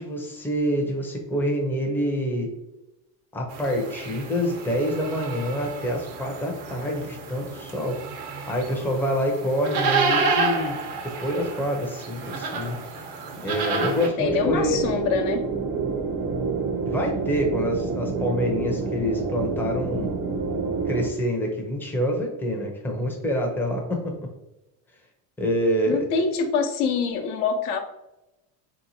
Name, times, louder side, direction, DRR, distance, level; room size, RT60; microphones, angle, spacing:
voice 1, 0.0-2.5 3.3-8.0 8.5-10.8 11.2-12.8 13.4-14.8 16.8-20.1 20.9-24.0 25.4-26.1, equal, 5° left, 0 dB, 0.5 m, -26 dB
sound 1, 3.5-14.1, right 4 dB, 90° right, 0.9 m, -30 dB
voice 2, 14.2-15.4 25.9-27.8, left 5 dB, 75° left, 5 dB, 0.8 m, -25 dB
sound 2, 14.2-21.1, right 4 dB, 45° right, 0.6 m, -28 dB
3.5 x 2.9 x 2.6 m, 0.95 s
cardioid pair, 130°, 44 cm